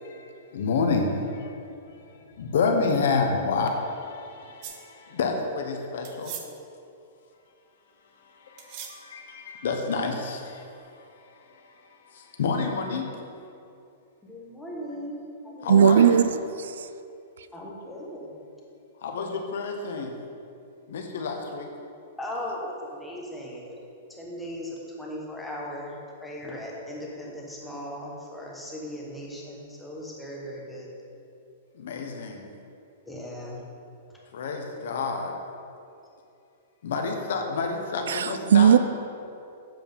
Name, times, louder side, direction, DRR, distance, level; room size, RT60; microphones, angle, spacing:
voice 1, 0.0-6.3 8.2-13.1 15.6-16.3 19.0-20.1 20.9-21.7 31.7-32.5 34.3-35.4 36.8-38.7, left 4 dB, 60° left, 3 dB, 1.0 m, -29 dB
sound 1, 4.6-4.8 6.0-6.5 8.6-9.0, right 9 dB, 30° right, 0.6 m, -39 dB
voice 2, 14.2-15.9 17.5-18.4 22.2-23.8 24.1-30.9 33.0-33.6 34.1-34.2, equal, 5° left, -4 dB, 1.0 m, -38 dB
voice 3, 15.7-16.2 16.6-16.9 38.1-38.8, right 8 dB, 85° right, 12 dB, 0.5 m, -17 dB
7.7 x 7.3 x 5.3 m, 2.6 s
supercardioid pair, 180°, 0 cm